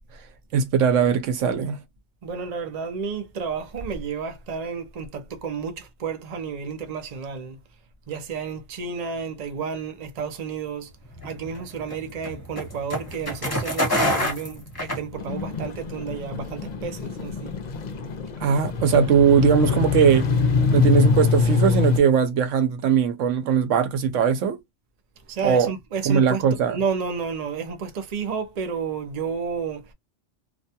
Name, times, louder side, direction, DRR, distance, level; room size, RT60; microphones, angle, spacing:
voice 1, 0.5-1.8 18.4-20.3 20.7-24.6 25.4-25.7 26.0-26.8, right 7 dB, 85° right, 1.0 m, -20 dB
voice 2, 2.2-7.6 8.1-10.9 11.2-17.6 25.3-29.9, right 6 dB, 45° right, 0.6 m, -31 dB
sound 1, 11.2-15.6, left 1 dB, 20° left, 1.1 m, -27 dB
sound 2, 15.1-22.0, left 5 dB, 50° left, 0.6 m, -24 dB
2.5 x 2.2 x 2.6 m
omnidirectional pair, 1.2 m